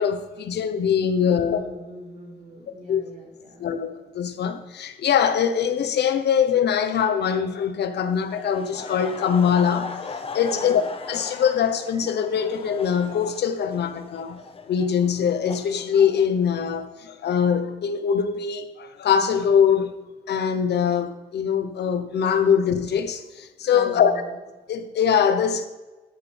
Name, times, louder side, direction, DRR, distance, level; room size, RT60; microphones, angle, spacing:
voice 1, 0.0-1.6 2.9-3.0 3.6-10.8 11.1-14.4 14.7-20.0 20.3-24.1 24.7-25.7, left 7 dB, 80° left, 1.1 m, -22 dB
voice 2, 1.2-3.7 10.5-10.8 23.7-24.4, right 1 dB, 50° right, 4.5 m, -39 dB
Laughter, 8.3-16.8, left 4 dB, 35° left, 1.2 m, -38 dB
13.0 x 11.0 x 3.5 m
wide cardioid pair, 130°, 17 cm